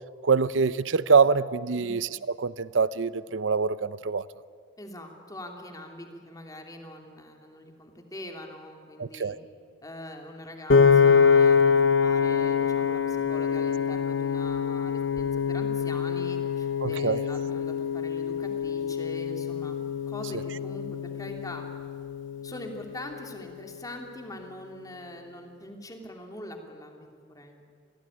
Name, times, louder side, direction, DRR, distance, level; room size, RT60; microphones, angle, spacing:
voice 1, 0.2-2.1 2.4-4.2 9.0-9.4 16.8-17.2, right 5 dB, 85° right, 17 dB, 0.7 m, -24 dB
voice 2, 4.8-9.4 9.8-19.8 20.1-21.6 22.4-27.6, left 1 dB, 20° left, 3 dB, 2.9 m, -43 dB
Piano, 10.7-22.9, left 6 dB, 85° left, 1.1 m, -25 dB
26.5 x 18.0 x 9.9 m, 2.1 s
head